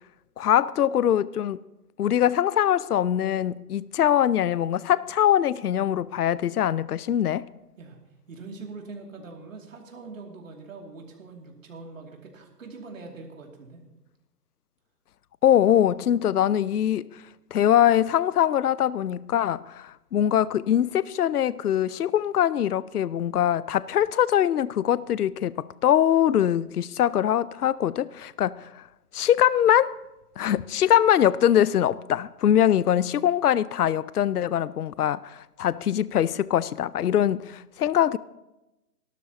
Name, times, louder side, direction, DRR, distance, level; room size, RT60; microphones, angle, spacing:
voice 1, 0.4-1.6 2.0-7.5 15.4-17.2 17.5-28.8 29.1-30.0 30.4-38.2, left 10 dB, 65° left, 0.5 m, -23 dB
voice 2, 8.3-13.8, right 3 dB, 50° right, 2.7 m, -43 dB
27.0 x 12.5 x 2.9 m
hypercardioid pair, 170°, 49 cm